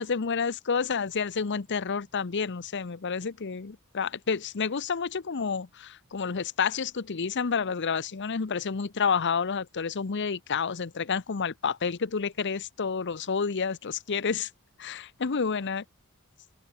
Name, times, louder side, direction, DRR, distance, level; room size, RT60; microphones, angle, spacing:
voice 1, 0.0-14.5 14.8-15.8, left 5 dB, 55° left, 0.7 m, -29 dB
open air
head